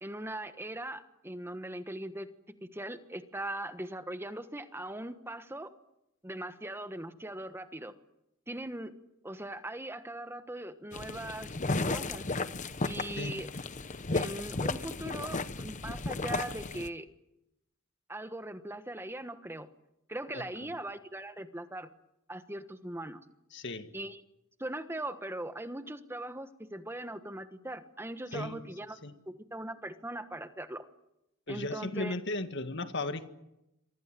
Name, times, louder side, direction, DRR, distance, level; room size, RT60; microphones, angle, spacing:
voice 1, 0.0-2.3 2.7-5.7 6.2-7.9 8.5-8.9 9.2-11.5 11.9-12.3 12.8-13.5 14.1-17.1 18.1-19.7 20.1-21.9 22.3-23.2 23.9-24.2 24.6-29.0 29.3-30.8 31.5-32.1, right 1 dB, 10° right, 10 dB, 1.3 m, -40 dB
sound 1, 10.9-16.9, left 3 dB, 35° left, 0.9 m, -34 dB
voice 2, 23.5-23.9 28.3-28.6 29.0-29.1 31.5-33.3, left 2 dB, 55° left, 8 dB, 1.9 m, -36 dB
27.5 x 24.0 x 7.6 m, 0.88 s
head